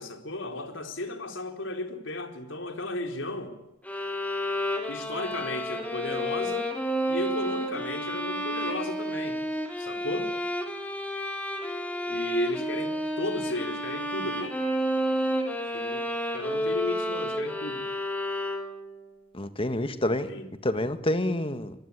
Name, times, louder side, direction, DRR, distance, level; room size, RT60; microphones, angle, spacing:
voice 1, 0.0-3.5 4.9-6.7 7.1-9.4 9.8-10.3 12.0-14.5 15.7-16.1 16.3-17.8 20.3-20.5, left 2 dB, 75° left, 4.2 m, -34 dB
sound 1, 3.8-19.0, equal, 10° left, 4.1 m, -31 dB
voice 2, 19.3-20.3 20.6-21.7, left 1 dB, 30° left, 1.7 m, -28 dB
25.0 x 23.0 x 10.0 m
head